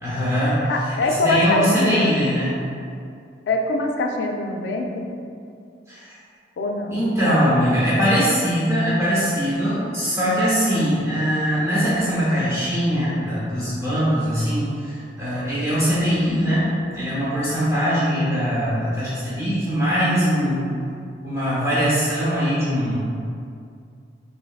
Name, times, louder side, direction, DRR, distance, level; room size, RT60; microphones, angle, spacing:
voice 1, 0.0-0.6 1.0-2.5 5.9-6.1 6.9-20.7 21.2-23.0, equal, 15° right, -11 dB, 0.9 m, -21 dB
voice 2, 0.6-2.1 3.5-5.1 6.6-7.0, left 2 dB, 70° left, 2 dB, 0.3 m, -23 dB
3.4 x 2.6 x 2.3 m, 2.4 s
head